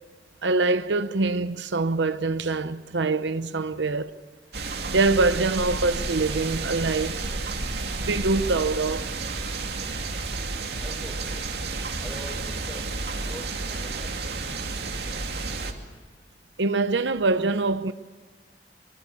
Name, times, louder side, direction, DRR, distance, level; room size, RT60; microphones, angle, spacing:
voice 1, 0.4-4.2 4.9-7.2 8.0-9.1 16.6-17.9, right 3 dB, 85° right, 0.9 m, -24 dB
sound 1, 4.5-15.7, right 3 dB, 65° right, 2.5 m, -31 dB
voice 2, 10.8-11.5 12.0-12.9 13.2-14.4, equal, ahead, 4.9 m, -44 dB
24.5 x 24.0 x 8.4 m
head